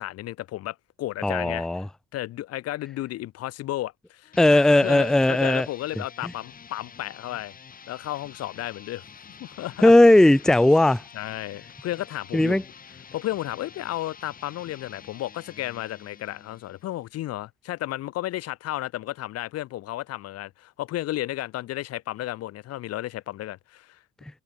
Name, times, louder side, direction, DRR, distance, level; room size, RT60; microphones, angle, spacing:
voice 1, 0.0-1.9 2.1-7.5 7.9-9.0 9.4-9.9 11.1-12.6 13.1-24.0, left 15 dB, 55° left, 1.1 m, -33 dB
voice 2, 1.2-1.9 4.4-5.7 9.8-11.0 12.3-12.6, left 1 dB, ahead, 0.7 m, -17 dB
sound 1, 4.2-17.0, left 6 dB, 30° left, 3.7 m, -48 dB
cardioid pair, 135°, 29 cm